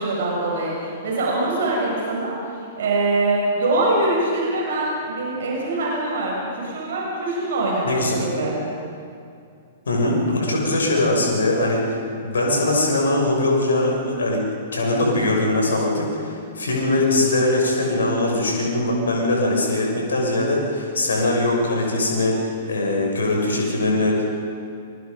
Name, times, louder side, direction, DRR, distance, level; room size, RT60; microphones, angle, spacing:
voice 1, 0.0-2.4 2.8-8.5, right 2 dB, 60° right, -3 dB, 7.1 m, -23 dB
voice 2, 7.8-8.2 9.9-24.2, left 2 dB, 70° left, -1 dB, 6.4 m, -21 dB
28.0 x 23.5 x 5.3 m, 2.4 s
figure-of-eight pair, 105°, 0 cm